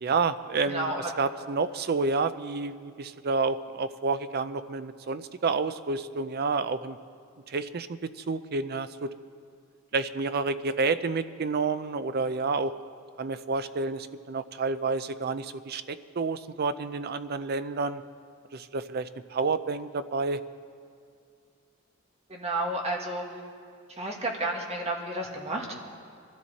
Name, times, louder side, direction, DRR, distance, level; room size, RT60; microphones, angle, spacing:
voice 1, 0.0-0.9 1.2-7.0 7.5-9.1 9.9-12.7 13.2-18.0 18.5-20.4, right 4 dB, 50° right, 12 dB, 0.5 m, -29 dB
voice 2, 0.7-1.0 22.3-23.2 24.0-25.7, right 1 dB, 30° right, 0 dB, 1.8 m, -31 dB
22.5 x 13.5 x 4.1 m, 2.3 s
head